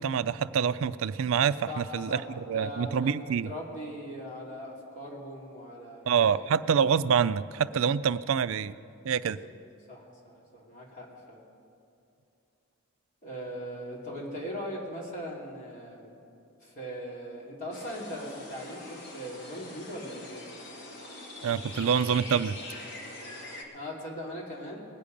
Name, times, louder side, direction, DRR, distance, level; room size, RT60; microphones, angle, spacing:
voice 1, 0.0-2.1 2.4-3.5 6.1-8.7 9.0-9.4 21.4-22.6, right 7 dB, 60° right, 15 dB, 0.3 m, -26 dB
voice 2, 1.7-6.5 9.2-9.5 9.9-11.4 13.2-16.2 16.6-20.5 23.7-24.8, equal, 35° left, -4 dB, 2.7 m, -40 dB
sound 1, 17.7-23.6, left 2 dB, 50° left, 1.6 m, -43 dB
20.5 x 8.5 x 5.2 m, 2.6 s
head